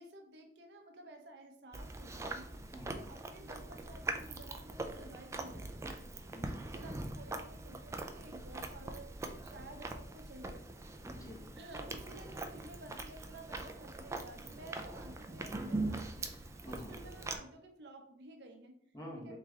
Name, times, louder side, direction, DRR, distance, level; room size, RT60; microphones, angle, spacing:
voice 1, 0.0-5.7 6.0-6.1 6.7-10.6 11.6-18.8 19.2-19.4, right 1 dB, 70° right, 4 dB, 0.7 m, -53 dB
Chewing mastication, 1.7-17.4, right 2 dB, 15° right, 0.3 m, -42 dB
voice 2, 6.3-7.0 11.0-11.4 16.6-17.0 18.9-19.4, equal, 20° left, -1 dB, 0.9 m, -48 dB
3.3 x 3.2 x 3.5 m, 0.69 s
head